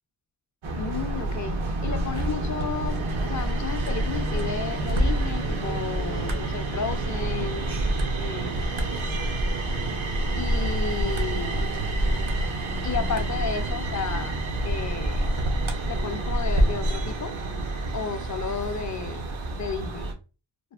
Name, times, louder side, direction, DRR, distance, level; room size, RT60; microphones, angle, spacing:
sound 1, 0.6-20.1, right 1 dB, 75° right, 0.8 m, -27 dB
voice 1, 0.8-7.7 8.2-8.6 10.4-11.7 12.8-15.2 15.9-17.3 17.9-19.3 19.5-20.1, left 6 dB, 40° left, 0.5 m, -33 dB
3.3 x 2.0 x 2.3 m
cardioid pair, 55°, 48 cm